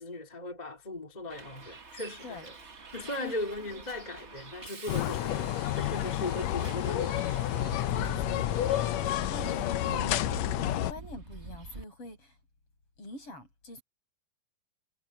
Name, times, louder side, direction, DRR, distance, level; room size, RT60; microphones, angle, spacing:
voice 1, 0.0-2.5 2.9-7.5, left 2 dB, 15° left, 2.2 m, -38 dB
Bus, 1.3-11.8, right 3 dB, 40° right, 0.9 m, -45 dB
voice 2, 2.2-2.5 3.1-3.4 7.9-8.7 9.3-10.2 10.5-12.4 13.0-13.8, left 2 dB, 40° left, 7.8 m, -44 dB
sound 1, 4.9-10.9, left 12 dB, 75° left, 1.6 m, -30 dB
omnidirectional pair, 3.9 m